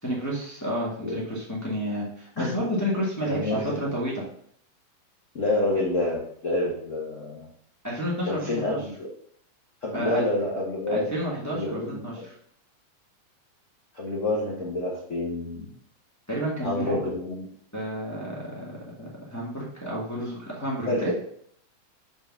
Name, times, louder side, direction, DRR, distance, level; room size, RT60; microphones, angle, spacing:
voice 1, 0.0-4.2 7.8-8.4 8.7-8.8 9.9-10.2 10.9-12.3 16.3-17.0 17.7-18.6 19.0-21.1, equal, 15° left, -5 dB, 0.5 m, -30 dB
voice 2, 3.2-3.8 5.3-7.5 8.2-9.1 9.8-11.1 11.5-12.3 13.9-15.7 16.6-17.5 20.9-21.1, left 2 dB, 75° left, -4 dB, 0.7 m, -28 dB
6.5 x 3.9 x 6.0 m, 0.65 s
omnidirectional pair, 3.6 m